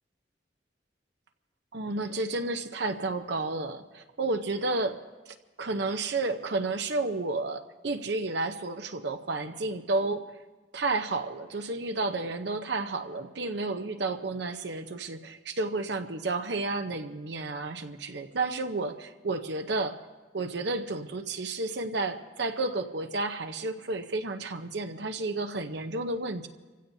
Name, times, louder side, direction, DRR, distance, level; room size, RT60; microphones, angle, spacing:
voice 1, 1.7-5.0 5.3-10.3 10.7-20.0 20.3-26.5, right 3 dB, 65° right, 6 dB, 0.7 m, -31 dB
28.5 x 16.0 x 2.7 m, 1.2 s
head